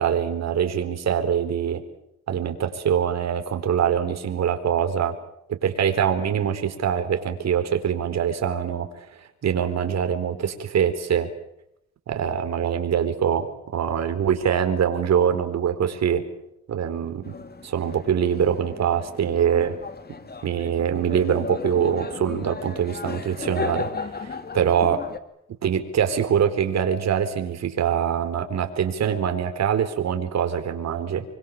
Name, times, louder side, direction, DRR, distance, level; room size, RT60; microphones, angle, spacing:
voice 1, 0.0-1.8 2.3-5.1 5.5-11.3 12.1-16.2 16.7-17.3 17.6-19.8 20.4-25.0 25.6-31.2, right 8 dB, 60° right, 7 dB, 4.2 m, -24 dB
sound 1, 17.2-25.2, left 4 dB, 30° left, 2.7 m, -35 dB
26.5 x 24.5 x 7.4 m, 0.78 s
cardioid pair, 90°, 30 cm